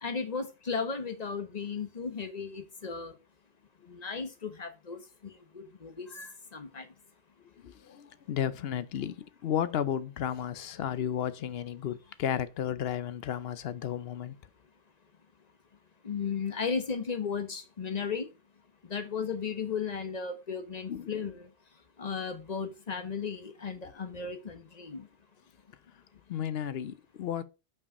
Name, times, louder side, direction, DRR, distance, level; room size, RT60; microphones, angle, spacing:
voice 1, 0.0-3.1 3.9-5.0 5.5-6.9 16.0-18.3 18.8-21.5 22.0-25.1, left 5 dB, 40° left, 1.1 m, -35 dB
voice 2, 7.6-14.4 20.9-21.2 26.3-27.4, left 9 dB, 70° left, 0.8 m, -33 dB
5.7 x 4.7 x 5.2 m
omnidirectional pair, 1.1 m